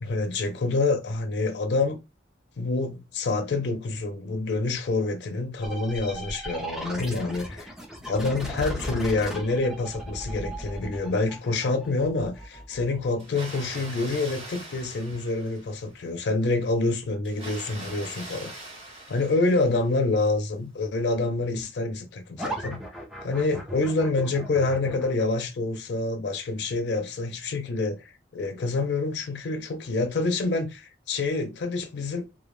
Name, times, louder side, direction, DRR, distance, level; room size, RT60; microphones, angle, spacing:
voice 1, 0.0-2.0 2.6-7.7 8.1-18.5 19.1-22.8 23.2-32.3, left 3 dB, 70° left, 0.4 m, -27 dB
sound 1, 5.6-15.0 22.4-25.3, right 1 dB, ahead, 0.4 m, -37 dB
Water, 13.2-16.0 17.2-20.1, right 1 dB, 35° right, 1.0 m, -42 dB
2.1 x 2.1 x 3.0 m
head